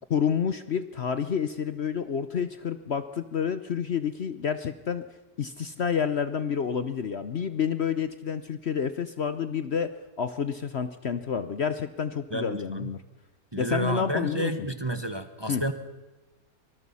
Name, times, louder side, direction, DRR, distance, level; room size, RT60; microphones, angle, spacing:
voice 1, 0.1-5.1 5.4-13.0 13.6-14.5 15.5-15.6, left 7 dB, 50° left, 12 dB, 1.0 m, -29 dB
voice 2, 12.3-12.9 13.5-15.7, right 1 dB, 20° right, 9 dB, 1.1 m, -30 dB
24.5 x 20.0 x 5.6 m, 1.1 s
omnidirectional pair, 1.6 m